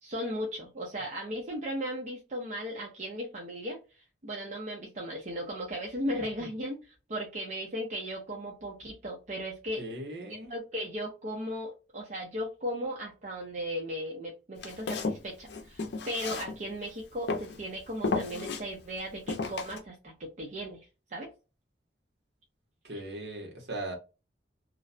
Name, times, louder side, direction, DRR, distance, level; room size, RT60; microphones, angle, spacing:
voice 1, 0.0-3.8 4.2-9.8 10.3-21.3, equal, 45° right, -1 dB, 0.6 m, -36 dB
voice 2, 9.8-10.5 22.8-23.9, right 1 dB, 70° right, 0 dB, 1.0 m, -38 dB
Walk footsteps, 14.6-16.9 17.3-17.6 18.0-18.6 19.3-19.8, left 3 dB, 65° left, 0.5 m, -33 dB
2.4 x 2.1 x 2.5 m, 0.30 s
head